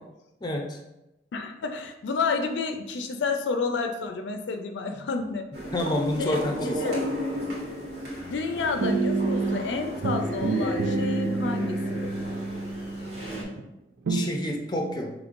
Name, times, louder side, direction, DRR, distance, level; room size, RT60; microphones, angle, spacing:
voice 1, 0.4-0.8 5.7-6.8 14.1-15.1, left 1 dB, 25° left, 2 dB, 0.5 m, -28 dB
voice 2, 1.3-5.5 6.1-7.0 8.3-12.1, left 4 dB, 80° left, 6 dB, 0.4 m, -30 dB
sound 1, 5.5-13.4, equal, 60° right, 1.5 m, -33 dB
sound 2, 8.8-9.7 10.0-13.6 14.1-14.3, right 3 dB, 85° right, 0.4 m, -28 dB
5.2 x 3.1 x 2.5 m, 0.92 s
head